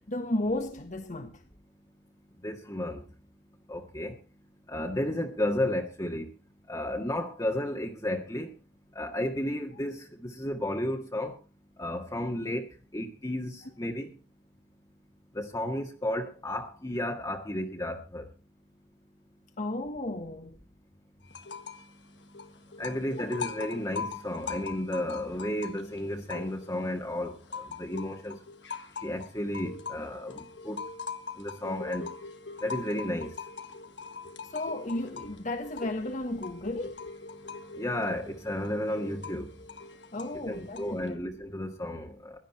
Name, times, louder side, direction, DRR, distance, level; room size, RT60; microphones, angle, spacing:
voice 1, 0.1-1.4 19.6-20.6 23.2-23.3 34.5-37.0 40.1-41.2, left 1 dB, 45° left, 1.4 m, -33 dB
voice 2, 2.4-3.0 3.7-4.1 4.7-6.3 6.7-8.5 9.0-10.0 10.2-11.3 11.8-12.6 12.9-14.1 15.4-18.2 22.8-27.3 27.8-28.4 29.0-30.3 30.7-30.8 31.4-32.1 32.6-33.3 37.8-39.5 40.5-42.1, left 1 dB, 20° left, 1.7 m, -32 dB
sound 1, 21.3-21.9 22.2-26.9 27.2-41.1, left 5 dB, 90° left, 1.6 m, -42 dB
16.5 x 12.0 x 4.4 m
head